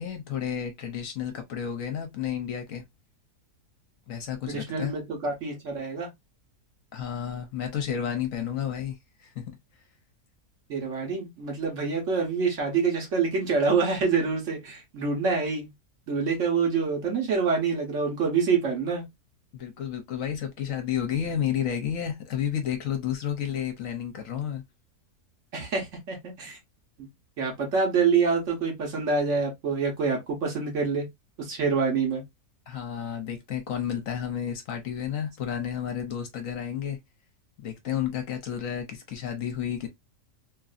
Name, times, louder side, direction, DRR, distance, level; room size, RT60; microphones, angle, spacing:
voice 1, 0.0-2.8 4.1-4.9 6.9-9.5 19.5-24.6 32.7-37.0 37.6-39.9, left 9 dB, 65° left, 1.1 m, -31 dB
voice 2, 4.5-6.1 10.7-15.7 16.1-19.0 25.5-26.6 27.0-27.1 27.4-31.1 31.4-32.2, right 5 dB, 60° right, 1.3 m, -26 dB
3.0 x 2.6 x 2.4 m
omnidirectional pair, 1.6 m